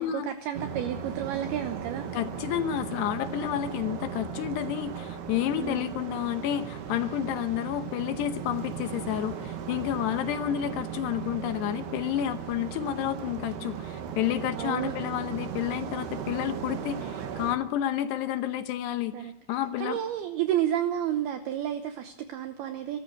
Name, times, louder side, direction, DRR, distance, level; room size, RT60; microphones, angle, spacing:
voice 1, 0.0-2.1 5.6-6.0 14.5-15.0 19.1-23.0, right 11 dB, 80° right, 8 dB, 2.2 m, -31 dB
sound 1, 0.5-17.6, right 8 dB, 65° right, 3.3 m, -37 dB
voice 2, 2.1-20.0, left 11 dB, 75° left, 10 dB, 2.6 m, -30 dB
22.5 x 14.0 x 8.4 m, 0.87 s
omnidirectional pair, 5.7 m